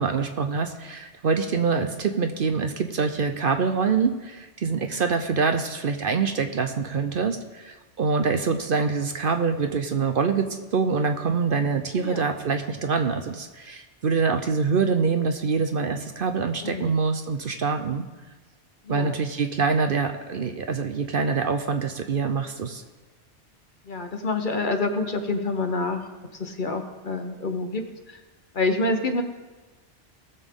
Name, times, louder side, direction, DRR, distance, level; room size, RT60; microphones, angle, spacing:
voice 1, 0.0-18.0 18.9-22.8, right 5 dB, 55° right, 7 dB, 0.8 m, -25 dB
voice 2, 11.9-12.3 16.6-17.0 18.8-19.2 23.8-28.2 28.5-29.2, left 3 dB, 45° left, 6 dB, 1.0 m, -28 dB
19.5 x 7.2 x 3.7 m, 1.3 s
omnidirectional pair, 1.2 m